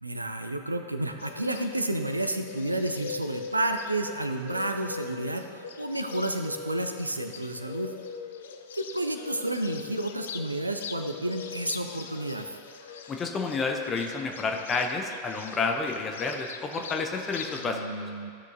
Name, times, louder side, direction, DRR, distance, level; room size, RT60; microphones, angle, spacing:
voice 1, 0.0-7.9 8.7-12.6 17.6-18.3, right 1 dB, 85° right, 6 dB, 0.5 m, -31 dB
Bird, 1.2-17.7, left 6 dB, 60° left, 0.5 m, -42 dB
voice 2, 13.1-17.8, left 4 dB, 20° left, 3 dB, 0.7 m, -30 dB
14.0 x 6.5 x 2.6 m, 2.2 s
figure-of-eight pair, 90°, 0 cm